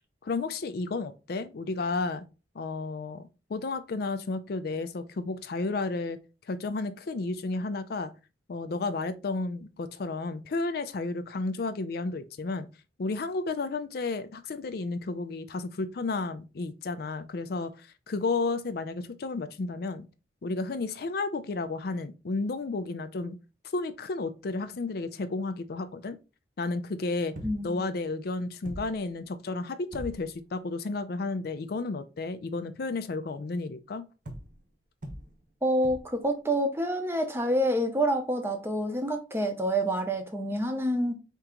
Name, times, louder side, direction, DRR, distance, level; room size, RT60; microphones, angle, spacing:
voice 1, 0.2-2.2 2.5-3.2 3.5-6.2 6.5-8.1 8.5-12.7 13.0-20.0 20.4-23.4 23.7-26.2 26.6-27.3 27.6-34.1, left 3 dB, 55° left, 0.4 m, -32 dB
sound 1, 27.3-27.8 28.3-28.4 28.6-29.2 29.9-30.5 34.2-34.7 35.0-35.5 35.8-36.3 38.6-38.7, equal, 45° right, 0.8 m, -42 dB
voice 2, 27.4-27.9 35.6-41.1, right 1 dB, 15° right, 0.7 m, -27 dB
4.4 x 2.9 x 3.6 m
head